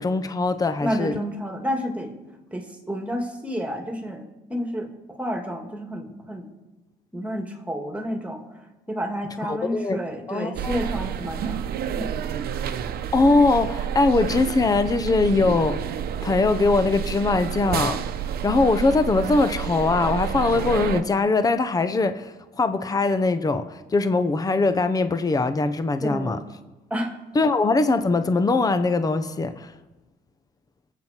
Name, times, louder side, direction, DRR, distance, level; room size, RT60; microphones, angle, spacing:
voice 1, 0.0-1.2 9.4-10.0 10.3-10.8 13.1-15.8 16.2-18.0 18.4-26.4 27.3-29.7, left 3 dB, 20° left, 11 dB, 0.9 m, -21 dB
voice 2, 0.8-2.1 2.5-4.2 4.5-6.5 7.1-8.4 8.9-11.6 12.0-12.1 26.0-26.5 26.9-27.2, equal, 10° right, 3 dB, 2.5 m, -30 dB
sound 1, 10.5-21.0, right 9 dB, 65° right, 0.9 m, -29 dB
24.0 x 8.1 x 4.5 m, 1.1 s
cardioid pair, 110°, 17 cm